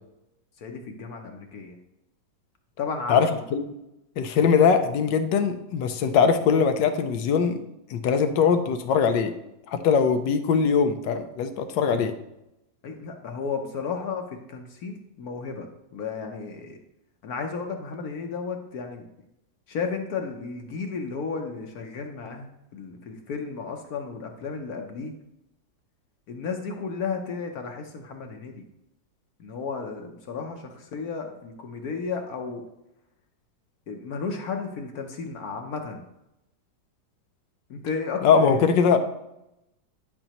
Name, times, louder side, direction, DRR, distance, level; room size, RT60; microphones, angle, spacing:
voice 1, 0.6-1.8 2.8-3.4 12.8-15.7 15.9-16.8 17.2-19.0 19.7-25.1 26.3-28.6 29.4-32.6 33.9-36.0 37.7-38.6, left 5 dB, 65° left, 4 dB, 1.1 m, -33 dB
voice 2, 3.1-3.6 4.2-7.6 7.9-9.3 9.7-12.1 38.2-39.0, left 6 dB, 85° left, 8 dB, 1.3 m, -21 dB
11.0 x 5.3 x 3.0 m, 0.88 s
omnidirectional pair, 1.9 m